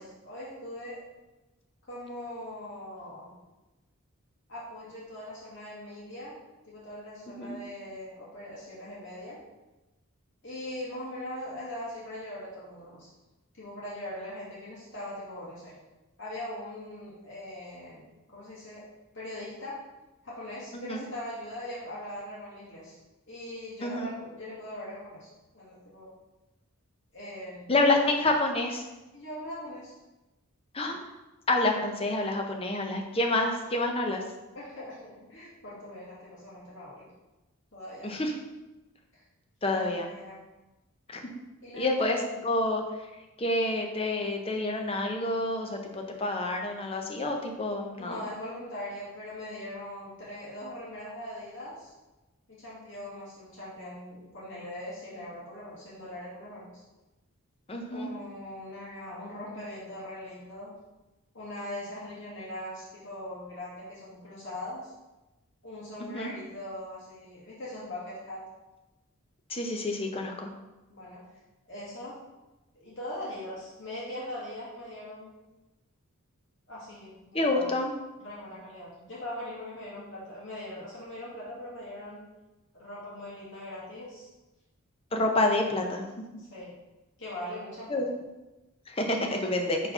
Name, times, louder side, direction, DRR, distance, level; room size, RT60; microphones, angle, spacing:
voice 1, 0.2-1.0 1.9-3.4 4.5-6.4 6.7-9.4 10.4-13.1 13.6-15.7 16.2-18.0 18.3-18.8 19.1-19.8 20.2-23.0 23.3-25.3 25.5-26.1 27.1-28.0 29.1-29.9 34.5-37.1 37.7-38.1 39.1-39.2 39.7-40.4 41.6-42.2 48.0-51.9 52.5-56.8 57.9-60.7 61.3-64.9 65.6-68.4 70.9-71.3 71.7-72.2 72.7-75.4 76.7-77.7 78.2-82.2 82.7-84.3 86.4-86.7 87.2-88.0, left 1 dB, 55° left, -7 dB, 2.2 m, -41 dB
voice 2, 23.8-24.1 27.7-28.8 30.7-31.0 31.5-34.2 38.0-38.3 39.6-40.1 41.1-41.2 41.8-42.8 43.4-48.2 57.7-58.1 66.0-66.3 69.5-70.5 77.3-77.9 85.1-86.1 87.9-88.1 88.9-89.8, left 2 dB, 25° left, 2 dB, 0.7 m, -28 dB
4.8 x 4.1 x 5.4 m, 1.0 s
head